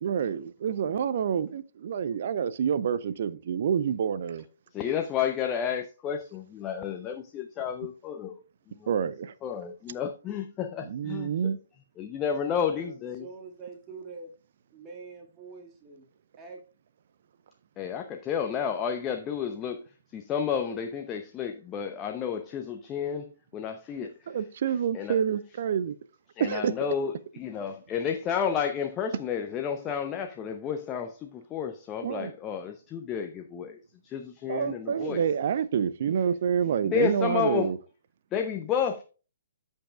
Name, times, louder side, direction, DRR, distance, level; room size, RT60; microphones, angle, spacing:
voice 1, 0.0-4.4 8.9-9.3 10.8-11.6 24.3-26.0 26.4-26.7 32.0-32.3 34.5-37.8, right 7 dB, 50° right, 0.5 m, -28 dB
voice 2, 4.7-8.4 8.7-8.9 9.4-11.6 12.0-13.3 17.8-19.8 20.1-24.3 24.9-25.2 26.3-35.2 36.8-37.7 38.3-39.0, left 8 dB, 20° left, 0.7 m, -31 dB
voice 3, 12.7-14.3 14.7-16.0 16.4-16.6, right 4 dB, 20° right, 2.0 m, -45 dB
14.0 x 5.4 x 2.4 m
figure-of-eight pair, 125°, 0 cm